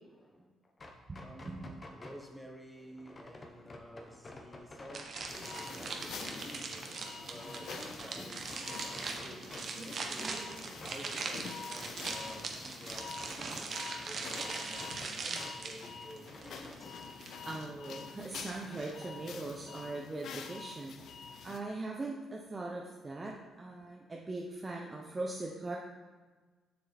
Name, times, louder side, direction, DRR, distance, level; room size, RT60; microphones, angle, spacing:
voice 1, 0.0-0.5 1.2-17.5, equal, 5° left, 1.1 m, -52 dB
sound 1, 0.6-2.2 3.0-6.4 6.9-8.1 8.4-9.7 10.0-13.7 13.9-15.5 15.9-16.8, left 2 dB, 35° left, 1.1 m, -51 dB
voice 2, 1.1-1.8 17.5-25.8, right 2 dB, 25° right, 0.8 m, -41 dB
sound 2, 4.9-17.6, right 4 dB, 55° right, 1.1 m, -41 dB
sound 3, 5.3-21.6, left 6 dB, 70° left, 0.6 m, -47 dB
7.2 x 6.4 x 4.3 m
cardioid pair, 90°, 0 cm